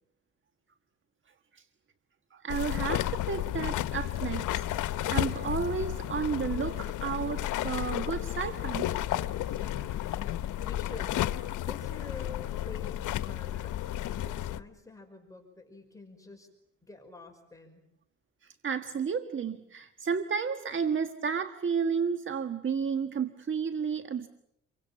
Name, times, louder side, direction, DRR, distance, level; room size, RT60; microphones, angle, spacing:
voice 1, 2.3-4.7 5.0-8.9 9.4-9.9 18.4-24.3, right 6 dB, 40° right, 10 dB, 1.5 m, -32 dB
sound 1, 2.5-14.6, left 13 dB, 85° left, 1.1 m, -32 dB
voice 2, 10.0-13.8 14.1-16.5 16.8-17.8, left 3 dB, 10° left, 3 dB, 5.5 m, -48 dB
29.5 x 24.0 x 7.4 m, 0.81 s
cardioid pair, 90°, 30 cm